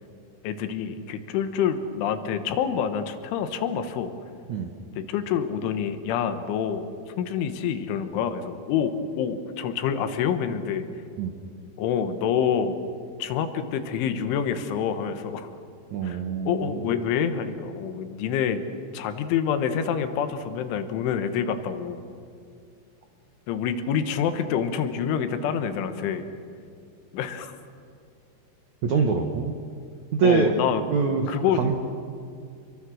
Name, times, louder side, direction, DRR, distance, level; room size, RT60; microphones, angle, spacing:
voice 1, 0.4-4.1 5.0-6.9 7.2-10.9 11.8-12.8 13.2-15.5 16.0-18.6 18.9-22.0 23.5-26.3 27.1-27.6 30.2-30.8 31.3-31.7, left 8 dB, 85° left, 8 dB, 3.8 m, -27 dB
voice 2, 15.9-16.9 28.8-29.5 30.1-30.5 30.9-31.7, right 5 dB, 75° right, 4 dB, 1.6 m, -24 dB
28.5 x 22.5 x 6.4 m, 2.4 s
omnidirectional pair, 5.4 m